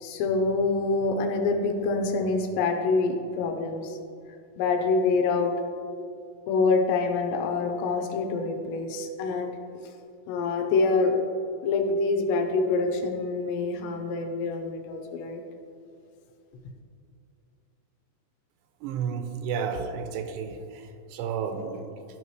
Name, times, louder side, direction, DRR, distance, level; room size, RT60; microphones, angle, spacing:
voice 1, 0.0-4.0 4.6-5.5 6.5-9.5 10.3-11.2 11.6-15.4, left 3 dB, 80° left, 3 dB, 2.8 m, -26 dB
voice 2, 18.8-22.0, right 6 dB, 85° right, 6 dB, 2.7 m, -32 dB
12.5 x 5.6 x 3.1 m, 2.5 s
omnidirectional pair, 4.9 m